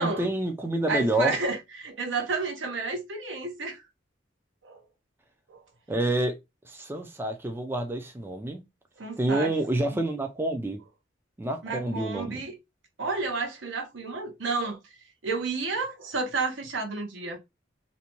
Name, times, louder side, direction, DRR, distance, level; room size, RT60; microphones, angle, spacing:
voice 1, 0.0-1.3 5.9-6.4 6.7-8.6 9.2-10.8 11.4-12.4, right 1 dB, 10° right, 0.3 m, -28 dB
voice 2, 0.9-3.8 4.6-4.8 5.5-5.6 9.0-10.0 11.6-12.6 13.0-14.8 15.2-17.4, right 3 dB, 75° right, 0.7 m, -31 dB
2.6 x 2.1 x 2.9 m
head